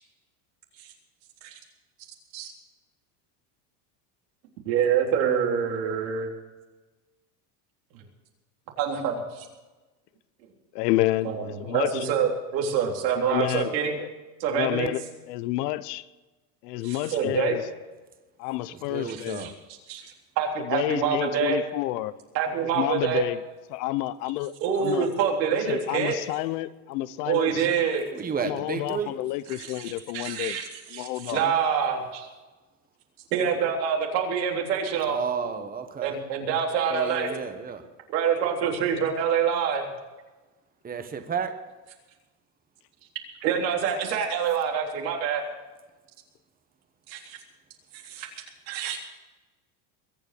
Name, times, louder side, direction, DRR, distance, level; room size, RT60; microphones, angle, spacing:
voice 1, 4.7-6.3 8.8-9.5 11.2-14.0 14.4-14.9 16.8-17.6 19.1-19.5 19.9-21.6 22.3-23.3 24.6-26.2 27.3-28.1 29.5-30.7 30.9-32.3 33.3-35.2 36.0-37.3 38.1-39.8 43.4-45.4 47.1-47.4 47.9-48.3 48.7-49.1, right 7 dB, 85° right, 0 dB, 3.8 m, -26 dB
voice 2, 10.7-12.0 13.2-13.7 14.0-14.1 14.5-15.0 15.3-16.0 16.6-17.6 18.4-19.6 20.6-22.1 22.7-23.4 23.7-25.1 25.5-27.7 28.4-30.6 30.9-31.4, left 16 dB, 70° left, 17 dB, 0.9 m, -29 dB
voice 3, 18.9-19.5 28.2-29.1 35.1-36.1 36.9-37.8 40.8-41.5, right 6 dB, 15° right, 8 dB, 1.2 m, -31 dB
22.0 x 8.1 x 6.8 m, 1.2 s
supercardioid pair, 125°, 50 cm